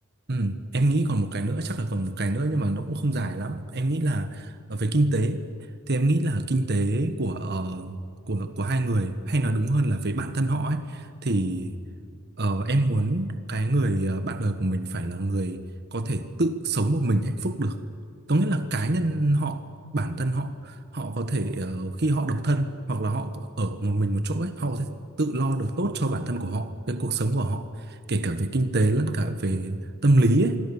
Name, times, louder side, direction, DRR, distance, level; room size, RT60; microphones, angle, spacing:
voice 1, 0.3-5.4 5.9-8.0 8.3-11.7 12.4-15.6 15.9-17.8 18.3-19.6 19.9-24.9 25.2-27.7 28.1-30.6, right 2 dB, 50° right, 9 dB, 1.3 m, -25 dB
26.0 x 22.5 x 7.2 m, 2.2 s
head